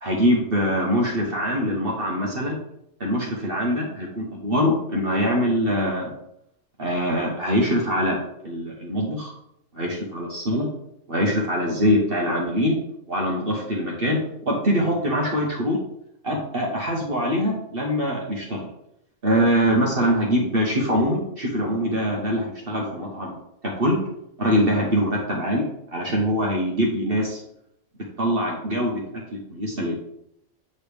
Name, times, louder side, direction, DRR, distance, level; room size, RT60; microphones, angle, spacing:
voice 1, 0.0-2.6 3.0-6.1 6.8-8.2 8.4-9.3 9.7-10.7 11.1-12.8 13.1-14.2 14.4-15.8 16.2-18.7 19.2-23.3 23.8-24.0 24.4-27.4 28.2-29.0 29.3-29.9, equal, 45° right, -2 dB, 1.3 m, -23 dB
8.3 x 4.9 x 3.4 m, 0.77 s
omnidirectional pair, 1.4 m